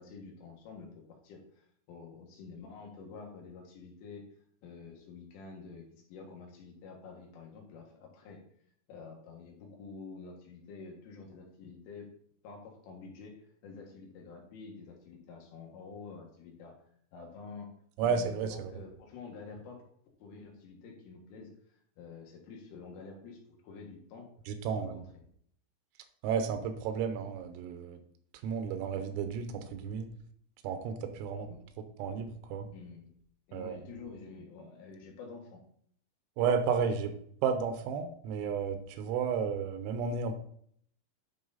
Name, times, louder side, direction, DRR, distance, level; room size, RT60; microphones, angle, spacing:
voice 1, 0.0-4.2 4.6-8.4 8.9-12.1 12.4-13.4 13.6-16.8 17.1-17.7 18.0-19.8 20.2-24.3 24.7-25.0 31.4-31.6 32.7-33.1 33.5-35.6, left 4 dB, 75° left, 1 dB, 4.1 m, -48 dB
voice 2, 18.0-18.7 24.5-25.0 26.2-28.0 28.4-30.1 30.6-31.5 32.0-32.7 33.5-33.8 36.4-37.1 37.4-40.4, right 6 dB, 90° right, 7 dB, 3.6 m, -32 dB
11.0 x 4.9 x 4.1 m, 0.64 s
omnidirectional pair, 5.9 m